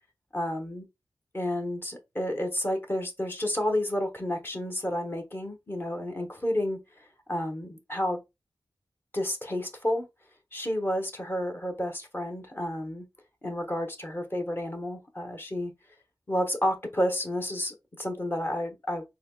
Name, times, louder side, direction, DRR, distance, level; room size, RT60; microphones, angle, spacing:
voice 1, 0.3-0.9 1.3-6.8 7.3-8.2 9.1-10.1 10.5-13.1 13.4-15.7 16.3-19.0, left 1 dB, 30° left, 1.2 m, -30 dB
4.0 x 2.9 x 2.3 m
cardioid pair, 50°, 8 cm